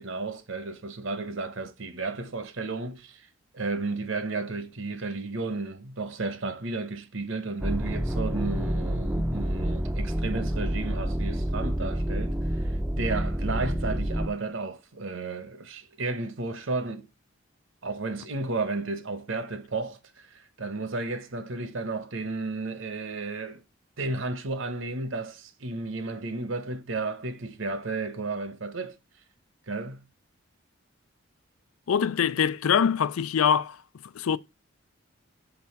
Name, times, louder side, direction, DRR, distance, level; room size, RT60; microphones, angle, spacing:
voice 1, 0.0-3.3 3.5-17.1 17.8-23.6 24.0-29.0 29.7-30.0, right 3 dB, 65° right, 1.0 m, -33 dB
sound 1, 7.6-14.3, equal, 5° right, 0.5 m, -28 dB
voice 2, 31.9-33.8 34.2-34.4, left 7 dB, 90° left, 0.4 m, -23 dB
7.0 x 3.5 x 5.7 m
head